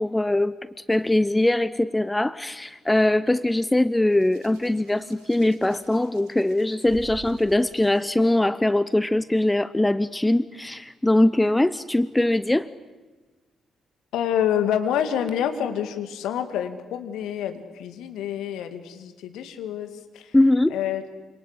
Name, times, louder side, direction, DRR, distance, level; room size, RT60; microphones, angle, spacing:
voice 1, 0.0-12.7 20.3-20.8, left 1 dB, 10° left, 17 dB, 0.8 m, -22 dB
Hands, 4.1-8.0 9.1-9.3, right 6 dB, 65° right, 3.6 m, -48 dB
voice 2, 14.1-20.4 20.7-21.0, left 9 dB, 60° left, 8 dB, 2.3 m, -27 dB
27.0 x 26.5 x 8.3 m, 1.3 s
figure-of-eight pair, 40°, 0 cm